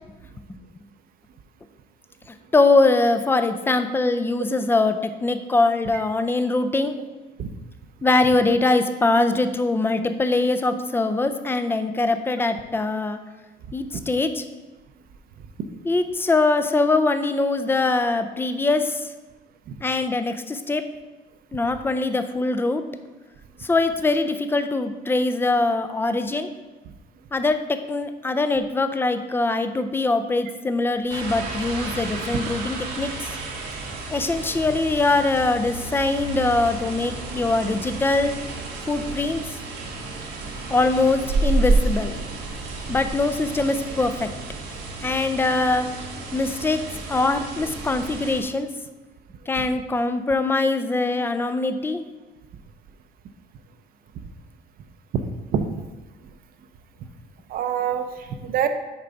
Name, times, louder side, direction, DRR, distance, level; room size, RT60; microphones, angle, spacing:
voice 1, 2.3-6.9 8.0-13.2 13.7-14.4 15.9-19.1 19.8-20.8 21.5-22.8 23.6-26.5 27.3-33.4 34.1-38.4 38.9-39.4 40.7-42.2 42.9-44.3 45.0-45.9 46.3-46.8 47.1-48.7 49.5-52.0, left 3 dB, 15° left, 9 dB, 0.4 m, -22 dB
sound 1, 31.1-48.4, right 2 dB, 90° right, 1.1 m, -30 dB
voice 2, 57.5-58.7, right 8 dB, 60° right, 8 dB, 0.6 m, -25 dB
6.8 x 4.7 x 3.9 m, 1.2 s
cardioid pair, 110°, 17 cm